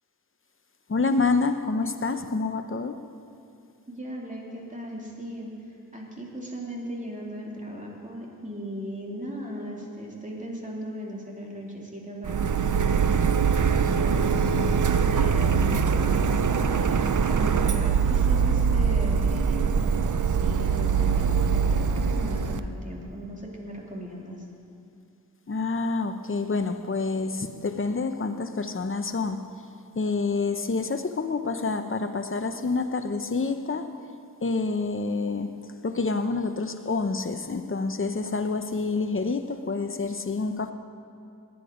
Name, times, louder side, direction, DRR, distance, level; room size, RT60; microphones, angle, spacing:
voice 1, 0.9-3.0 25.5-29.4 29.9-34.0 34.4-40.7, left 3 dB, 35° left, 8 dB, 0.8 m, -28 dB
voice 2, 3.9-5.5 5.9-13.2 13.9-24.4, equal, 20° right, -2 dB, 2.7 m, -37 dB
Printer, 12.2-22.6, right 6 dB, 60° right, 0.6 m, -23 dB
19.0 x 10.5 x 5.0 m, 2.6 s
wide cardioid pair, 85°, 36 cm